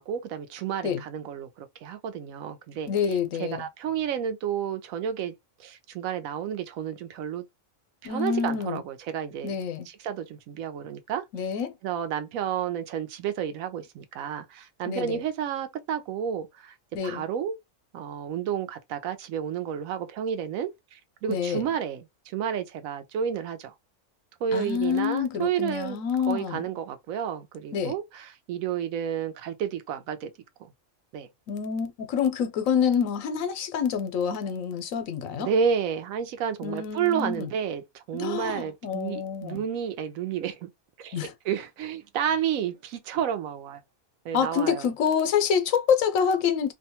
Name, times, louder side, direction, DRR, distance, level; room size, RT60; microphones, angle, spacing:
voice 1, 0.0-2.9 3.4-5.3 5.6-7.4 8.0-9.5 9.9-11.2 11.8-16.7 17.0-17.6 17.9-23.7 24.4-26.0 26.3-30.3 31.1-31.3 35.4-40.7 41.0-41.2 41.4-43.8 44.2-44.9, right 8 dB, 85° right, 1.0 m, -31 dB
voice 2, 2.9-3.7 8.0-8.8 9.4-9.9 11.3-11.7 14.8-15.2 16.9-17.3 21.3-21.6 24.5-26.7 27.7-27.9 31.5-35.5 36.6-37.5 38.1-39.6 41.1-41.3 44.3-46.7, left 7 dB, 80° left, 1.0 m, -27 dB
2.7 x 2.2 x 2.7 m
omnidirectional pair, 1.4 m